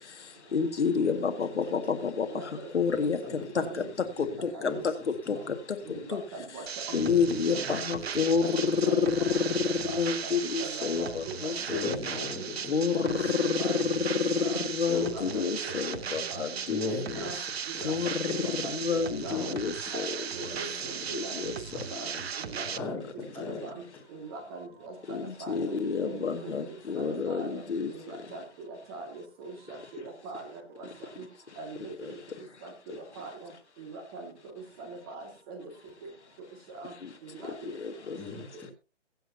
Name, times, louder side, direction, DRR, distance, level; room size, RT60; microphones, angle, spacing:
voice 1, 0.5-2.3 2.7-3.2 3.6-3.7 5.3-5.4 6.1-6.2 6.9-11.9 12.7-16.8 17.8-20.1 21.1-21.5 25.1-27.9 37.6-38.2, left 5 dB, 65° left, 7 dB, 2.0 m, -29 dB
voice 2, 2.3-2.7 3.2-3.8 4.2-4.9 5.3-5.4 5.9-7.0 7.4-7.8 8.1-9.0 9.8-10.3 10.6-11.9 12.9-13.0 13.6-13.9 14.4-14.6 14.9-15.8 16.3-16.4 17.1-17.4 17.7-18.1 18.4-19.6 19.9-21.5 22.0-22.1 22.4-22.9 23.4-23.8 24.1-25.8 26.0-27.6 27.9-30.9 31.2-31.3 31.6-32.2 32.6-33.5 33.8-35.7 36.0-36.1 36.7-36.9 37.2-37.7, right 3 dB, 20° right, 5 dB, 2.1 m, -42 dB
voice 3, 2.9-3.9 4.6-4.8 5.9-6.0 6.9-7.8 11.7-12.7 13.2-13.8 14.9-15.1 16.7-17.5 17.7-18.4 19.3-19.6 20.6-20.8 21.7-21.8 22.8-23.6 38.2-38.7, left 4 dB, 5° left, -2 dB, 2.0 m, -37 dB
sound 1, 6.7-22.8, right 7 dB, 55° right, 0.7 m, -37 dB
22.5 x 7.9 x 2.8 m, 0.28 s
hypercardioid pair, 160°, 37 cm